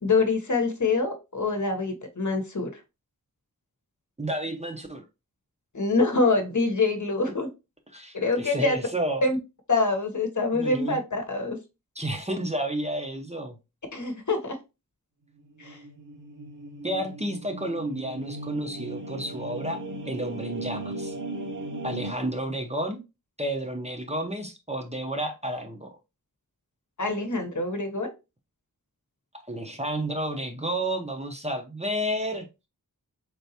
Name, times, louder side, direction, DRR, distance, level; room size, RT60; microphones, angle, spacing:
voice 1, 0.0-2.7 5.7-7.5 8.1-8.8 9.2-9.4 9.7-11.6 13.9-14.6 15.6-15.8 27.0-28.1, left 3 dB, 55° left, 1.0 m, -25 dB
voice 2, 4.2-5.0 7.9-9.2 10.5-11.0 12.0-13.6 16.8-19.8 20.1-21.1 21.8-23.0 23.4-26.0 29.4-32.5, right 1 dB, 20° right, 0.7 m, -31 dB
sound 1, 15.4-22.1, right 1 dB, 55° right, 0.9 m, -37 dB
3.8 x 3.4 x 2.8 m
wide cardioid pair, 65°, 37 cm